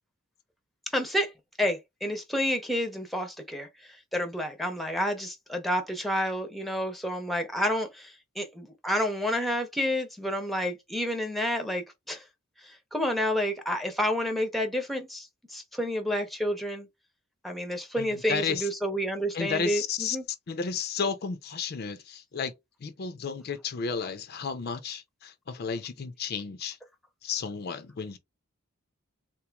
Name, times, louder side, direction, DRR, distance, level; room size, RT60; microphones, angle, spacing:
voice 1, 0.9-1.3 1.6-3.7 4.1-12.2 12.6-16.9 17.4-20.2, equal, ahead, 0.6 m, -29 dB
voice 2, 18.0-18.7 19.3-20.2 20.5-22.5 22.8-26.8 27.2-28.2, left 6 dB, 45° left, 0.4 m, -32 dB
3.7 x 2.9 x 2.3 m
head